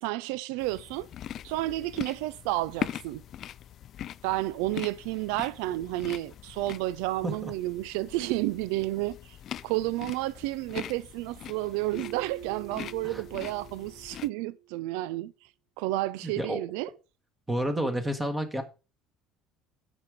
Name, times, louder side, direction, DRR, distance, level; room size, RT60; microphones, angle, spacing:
voice 1, 0.0-1.1 1.4-3.2 4.2-9.4 9.6-15.3 15.8-16.9, right 17 dB, 85° right, 0.4 m, -31 dB
sound 1, 0.6-14.3, left 11 dB, 45° left, 0.4 m, -42 dB
Keyboard (musical), 11.9-14.7, right 10 dB, 25° right, 0.9 m, -45 dB
voice 2, 17.5-18.6, right 1 dB, 10° right, 1.3 m, -30 dB
9.7 x 6.0 x 5.1 m
cardioid pair, 135°, 0 cm